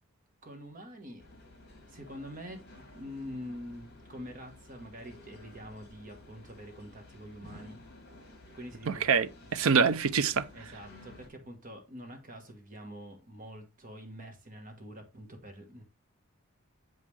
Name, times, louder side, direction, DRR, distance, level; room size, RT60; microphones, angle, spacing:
voice 1, 0.4-1.2 1.9-7.8 8.5-9.1 9.7-9.8 10.5-15.8, equal, 35° right, 1.4 m, -45 dB
sound 1, 1.2-11.3, left 2 dB, 45° left, 2.5 m, -53 dB
voice 2, 8.9-10.4, right 6 dB, 70° right, 0.5 m, -25 dB
7.7 x 5.4 x 3.3 m
head